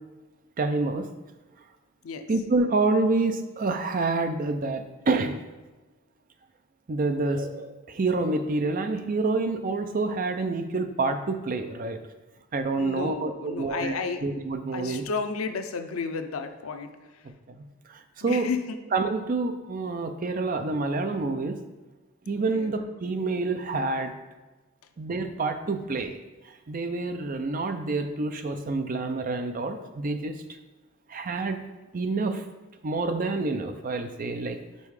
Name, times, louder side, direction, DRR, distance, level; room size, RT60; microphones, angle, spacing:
voice 1, 0.6-1.1 2.3-5.4 6.9-12.0 12.5-13.9 14.2-15.0 17.5-18.5 18.9-21.6 22.3-24.1 25.0-26.2 26.7-30.3 31.1-31.7 31.9-32.4 32.8-34.6, right 3 dB, 40° right, 7 dB, 0.5 m, -27 dB
voice 2, 12.8-14.2 14.7-17.3 18.2-18.8 22.5-22.7, left 4 dB, 90° left, 7 dB, 0.6 m, -32 dB
5.3 x 4.6 x 4.8 m, 1.2 s
head